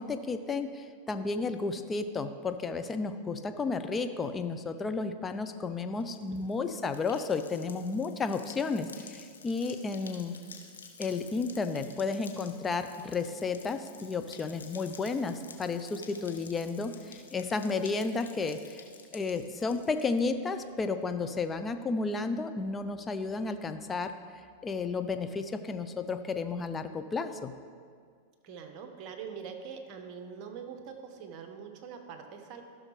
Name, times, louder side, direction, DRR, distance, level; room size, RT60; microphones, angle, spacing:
voice 1, 0.0-10.4 11.0-18.8 19.1-24.1 24.6-27.5, left 4 dB, 20° left, 9 dB, 0.6 m, -32 dB
sound 1, 6.0-20.2, left 5 dB, 90° left, 0.9 m, -51 dB
voice 2, 6.3-6.7 28.4-32.6, right 6 dB, 45° right, 4 dB, 1.3 m, -44 dB
15.0 x 6.3 x 3.3 m, 2.1 s
hypercardioid pair, 100°, 0 cm